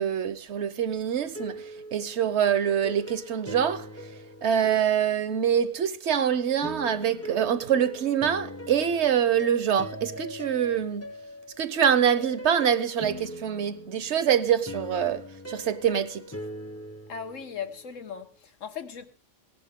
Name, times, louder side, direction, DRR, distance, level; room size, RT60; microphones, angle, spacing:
voice 1, 0.0-1.6 1.9-3.9 4.4-11.0 11.6-16.2, right 8 dB, 65° right, 1.1 m, -25 dB
sound 1, 1.2-6.0 6.6-17.9, equal, 15° left, 0.6 m, -41 dB
voice 2, 17.1-19.1, left 7 dB, 80° left, 1.5 m, -38 dB
17.5 x 11.0 x 3.6 m
omnidirectional pair, 1.3 m